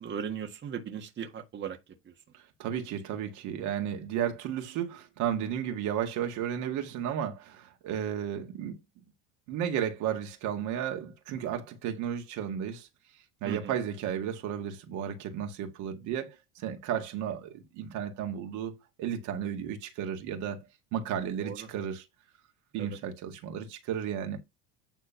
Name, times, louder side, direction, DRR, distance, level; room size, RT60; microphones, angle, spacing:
voice 1, 0.0-1.8 2.0-2.1 13.4-13.7 21.4-21.7 22.8-23.0, right 7 dB, 35° right, 1.7 m, -37 dB
voice 2, 2.3-8.8 9.5-12.9 13.4-20.7 20.9-22.1 22.7-24.4, right 9 dB, 65° right, 1.9 m, -33 dB
9.5 x 3.6 x 5.8 m
supercardioid pair, 110°, 33 cm